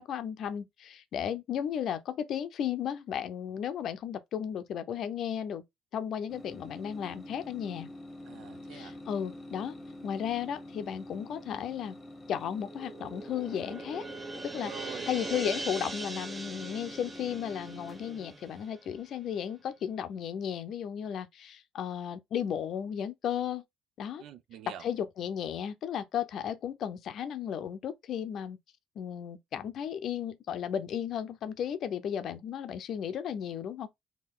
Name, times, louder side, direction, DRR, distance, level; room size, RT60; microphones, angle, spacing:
voice 1, 0.0-5.6 5.9-7.9 8.7-9.8 10.0-11.9 12.3-14.0 14.4-23.6 24.0-24.2 24.7-28.6 29.0-33.9, left 9 dB, 55° left, 0.6 m, -34 dB
sound 1, 6.3-18.6, left 1 dB, 20° left, 1.0 m, -47 dB
voice 2, 8.3-9.0 14.6-15.1 24.2-24.8, right 10 dB, 65° right, 0.6 m, -46 dB
sound 2, 12.6-19.2, right 2 dB, 20° right, 0.8 m, -41 dB
4.4 x 2.8 x 3.7 m
cardioid pair, 130°, 0 cm